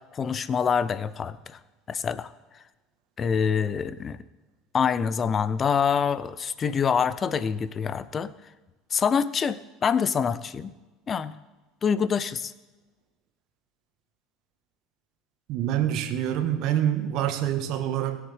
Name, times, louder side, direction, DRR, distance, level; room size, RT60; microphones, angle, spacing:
voice 1, 0.1-1.6 1.9-2.3 3.2-4.2 4.7-8.3 8.9-10.7 11.1-11.3 11.8-12.5, left 6 dB, 35° left, 16 dB, 0.7 m, -25 dB
voice 2, 15.5-18.2, right 11 dB, 55° right, 8 dB, 1.4 m, -26 dB
20.5 x 8.0 x 3.5 m, 1.2 s
figure-of-eight pair, 70°, 0 cm